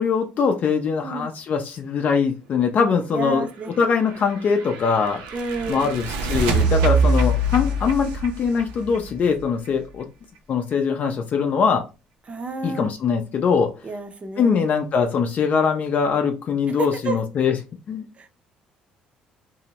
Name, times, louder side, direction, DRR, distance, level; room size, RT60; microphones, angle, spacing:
voice 1, 0.0-3.5 3.8-5.2 5.7-10.1 10.5-11.8 12.6-13.7 14.4-17.5 17.9-18.1, left 6 dB, 50° left, 4 dB, 0.4 m, -22 dB
voice 2, 3.1-3.7 5.3-5.9 12.3-12.9 13.8-14.6 16.8-17.2 18.2-18.3, right 4 dB, 35° right, 7 dB, 0.6 m, -30 dB
sound 1, 3.9-9.7, right 2 dB, 90° right, 0.5 m, -24 dB
2.6 x 2.0 x 2.8 m, 0.30 s
supercardioid pair, 70°, 3 cm